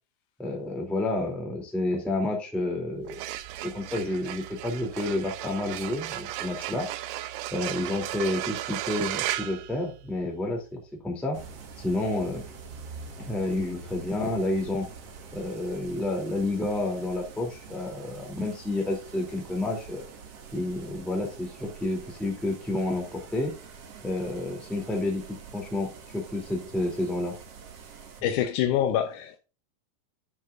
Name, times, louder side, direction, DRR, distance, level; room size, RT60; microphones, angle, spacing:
voice 1, 0.4-3.2 3.6-6.9 7.5-11.4 11.8-12.4 13.2-14.9 15.3-20.0 20.5-23.5 24.0-27.4, left 2 dB, ahead, 1.8 m, -30 dB
sound 1, 3.0-10.4, right 14 dB, 85° right, 2.6 m, -35 dB
sound 2, 11.3-28.2, right 4 dB, 55° right, 1.8 m, -45 dB
voice 2, 28.2-29.4, left 10 dB, 80° left, 1.8 m, -25 dB
12.5 x 6.4 x 2.5 m
omnidirectional pair, 4.4 m